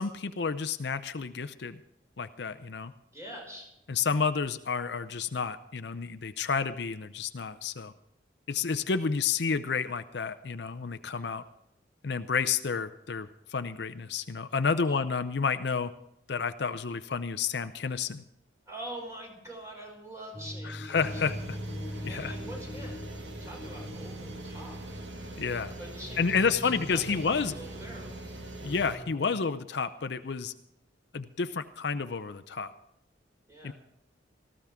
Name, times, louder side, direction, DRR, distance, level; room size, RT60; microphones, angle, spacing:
voice 1, 0.0-1.8 2.2-2.9 3.9-7.9 8.5-11.4 12.0-15.9 16.3-18.2 20.6-21.6 22.0-22.3 25.4-25.8 26.2-27.5 28.6-30.5 31.1-32.7 33.6-33.7, left 5 dB, 65° left, 11 dB, 0.6 m, -30 dB
voice 2, 3.1-3.7 14.8-15.0 18.7-21.2 22.1-23.0 23.4-24.9 25.8-28.2 33.5-33.7, right 1 dB, 15° right, -1 dB, 5.4 m, -44 dB
sound 1, 20.3-29.4, left 1 dB, 15° left, 0.8 m, -43 dB
sound 2, 20.9-29.0, right 2 dB, 85° right, 2.1 m, -42 dB
18.5 x 15.0 x 3.6 m, 0.80 s
head